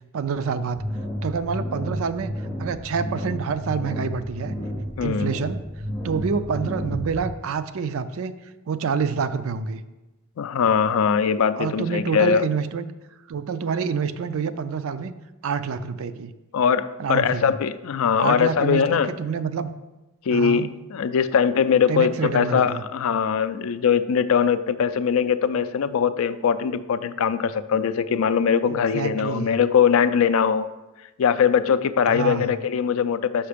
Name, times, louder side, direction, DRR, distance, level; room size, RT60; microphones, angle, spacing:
voice 1, 0.1-0.8 1.2-2.3 2.6-4.6 5.0-5.6 6.0-8.3 8.7-9.8 11.6-12.9 13.3-15.1 15.4-16.3 17.0-17.5 18.2-19.7 20.3-20.7 21.9-22.8 28.7-29.6 32.1-32.5, right 6 dB, 70° right, 11 dB, 0.4 m, -27 dB
sound 1, 0.7-7.3, equal, 30° left, 1.9 m, -31 dB
voice 2, 5.0-5.3 10.4-12.5 16.5-19.1 20.3-30.7 31.2-33.5, left 7 dB, 70° left, 13 dB, 0.3 m, -21 dB
5.7 x 5.1 x 5.0 m, 1.1 s
head